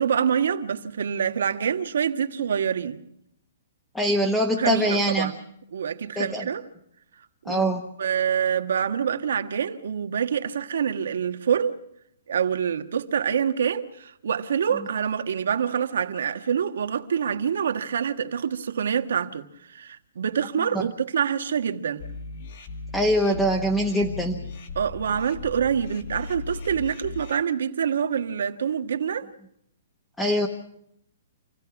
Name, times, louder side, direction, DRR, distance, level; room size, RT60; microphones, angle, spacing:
voice 1, 0.0-3.0 4.6-5.4 5.7-6.6 7.4-7.6 8.0-11.8 12.3-22.0 24.7-29.3, right 7 dB, 75° right, 1.5 m, -26 dB
voice 2, 3.9-5.3 6.2-6.5 7.5-7.8 22.9-24.4 30.2-30.5, equal, 5° left, 1.2 m, -23 dB
sound 1, 22.0-27.4, left 4 dB, 50° left, 2.5 m, -37 dB
27.5 x 16.0 x 6.0 m
hypercardioid pair, 165°, 0 cm